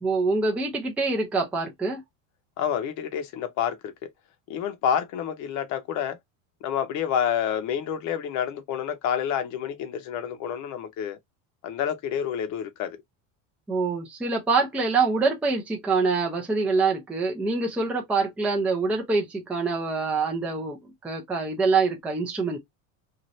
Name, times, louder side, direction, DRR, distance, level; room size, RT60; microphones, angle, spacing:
voice 1, 0.0-2.0 13.7-20.8 21.0-22.6, right 4 dB, 5° right, 0.4 m, -25 dB
voice 2, 2.6-4.1 4.5-6.2 6.6-11.2 11.6-13.0, left 9 dB, 45° left, 0.8 m, -28 dB
2.7 x 2.5 x 3.1 m
cardioid pair, 160°, 41 cm